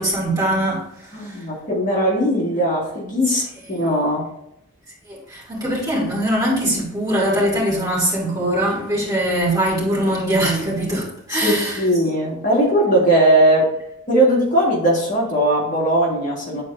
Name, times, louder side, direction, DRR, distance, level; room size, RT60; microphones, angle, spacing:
voice 1, 0.0-1.4 3.3-3.4 5.1-11.8, right 1 dB, 20° right, 2.6 m, -22 dB
voice 2, 1.1-3.4 3.7-4.3 11.4-13.7 14.1-16.6, right 1 dB, 40° left, 1.8 m, -19 dB
9.8 x 4.3 x 2.6 m
head